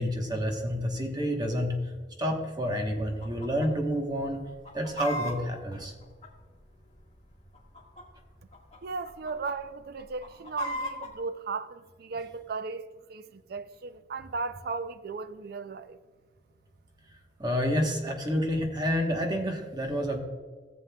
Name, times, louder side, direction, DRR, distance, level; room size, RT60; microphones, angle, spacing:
voice 1, 0.0-1.9 2.2-4.4 4.7-5.9 17.4-20.2, equal, 25° right, 1.1 m, -29 dB
Chicken rooster, 3.2-3.7 3.9-4.0 4.5-6.7 7.5-8.2 8.5-8.8 9.1-9.5 10.0-11.1, equal, 40° left, 1.7 m, -36 dB
voice 2, 8.8-12.8 13.1-16.0, right 4 dB, 60° right, 0.4 m, -36 dB
15.0 x 7.6 x 2.3 m
head